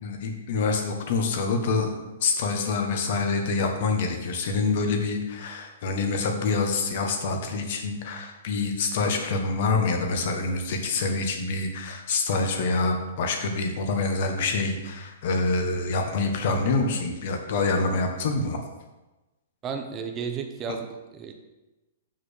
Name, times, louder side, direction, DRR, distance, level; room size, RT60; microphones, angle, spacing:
voice 1, 0.0-1.9 2.2-18.6, left 3 dB, 55° left, 4 dB, 1.3 m, -26 dB
voice 2, 19.6-21.3, right 6 dB, 20° right, 5 dB, 0.9 m, -33 dB
6.0 x 4.7 x 6.5 m, 1.1 s
hypercardioid pair, 145°, 0 cm